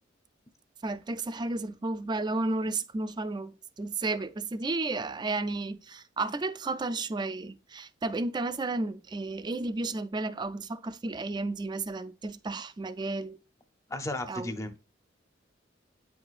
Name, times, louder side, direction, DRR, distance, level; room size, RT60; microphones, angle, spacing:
voice 1, 0.8-13.4 14.3-14.5, right 2 dB, 20° right, 0.4 m, -33 dB
voice 2, 13.9-14.8, left 1 dB, 15° left, 0.6 m, -35 dB
8.8 x 4.8 x 2.4 m
head